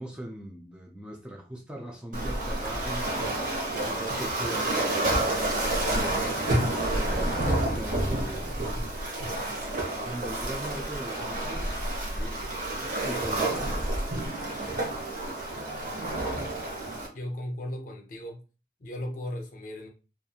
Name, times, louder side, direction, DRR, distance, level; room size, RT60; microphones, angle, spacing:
voice 1, 0.0-6.7 7.0-8.5 9.3-9.6 10.0-12.5 13.0-13.9, equal, 5° right, 0 dB, 0.4 m, -41 dB
Waves surf, 2.1-17.1, right 1 dB, 45° right, 0.8 m, -29 dB
voice 2, 17.1-18.4 18.8-19.9, left 1 dB, 50° left, 3 dB, 0.6 m, -36 dB
2.5 x 2.3 x 2.7 m, 0.33 s
head